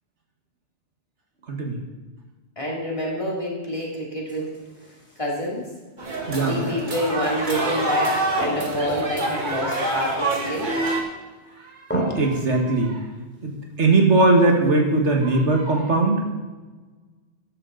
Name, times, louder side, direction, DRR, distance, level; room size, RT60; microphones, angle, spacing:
voice 1, 1.5-1.8 6.3-6.7 11.9-13.0 13.4-16.2, right 2 dB, 85° right, 2 dB, 2.0 m, -20 dB
voice 2, 2.6-4.5 5.2-5.7 6.4-10.7, equal, 30° left, -4 dB, 3.1 m, -27 dB
sound 1, 4.3-5.4 6.2-7.2 7.5-7.6 8.4-9.1 9.4-9.5 10.6-11.1 11.9-12.5 14.1-14.6, equal, 10° left, 2.5 m, -34 dB
sound 2, 6.0-11.0, right 2 dB, 45° right, 1.9 m, -26 dB
13.0 x 10.0 x 4.0 m, 1.3 s
omnidirectional pair, 1.2 m